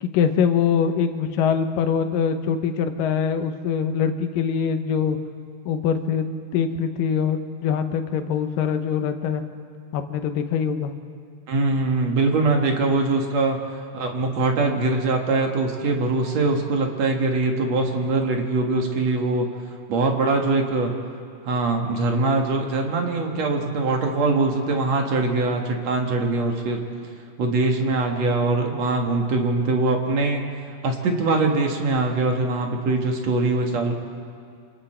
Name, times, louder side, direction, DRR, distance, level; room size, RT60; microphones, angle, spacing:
voice 1, 0.0-5.2 5.7-9.4 9.9-10.9, left 7 dB, 85° left, 7 dB, 2.7 m, -23 dB
voice 2, 11.5-13.6 13.9-19.5 19.9-20.9 21.4-26.8 27.4-30.4 30.8-33.9, right 3 dB, 55° right, 2 dB, 2.7 m, -22 dB
28.0 x 27.0 x 4.5 m, 2.2 s
omnidirectional pair, 3.8 m